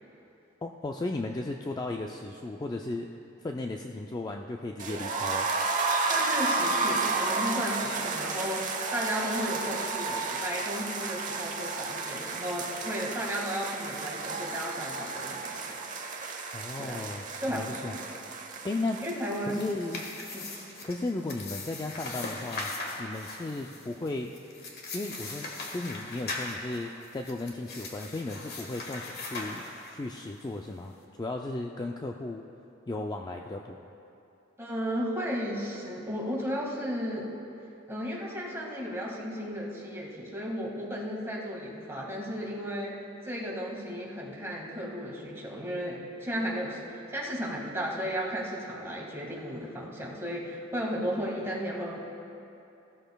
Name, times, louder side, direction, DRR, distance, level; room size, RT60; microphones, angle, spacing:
voice 1, 0.6-3.1 3.4-5.5 16.5-17.3 17.5-18.2 18.6-19.0 19.5-20.0 20.8-22.7 23.0-24.3 24.9-32.4 32.9-33.8, left 2 dB, 20° left, 2 dB, 0.4 m, -35 dB
sound 1, 4.8-20.6 20.9-21.0 21.3-21.4, right 3 dB, 40° right, 0.9 m, -32 dB
voice 2, 6.0-15.8 16.8-17.0 17.4-18.0 19.0-19.6 20.3-20.6 34.6-37.3 37.9-43.0 43.2-52.0, equal, 15° right, -3 dB, 1.8 m, -34 dB
sound 2, 19.3-30.2, left 2 dB, 55° left, 1.5 m, -40 dB
16.5 x 13.0 x 2.3 m, 2.8 s
head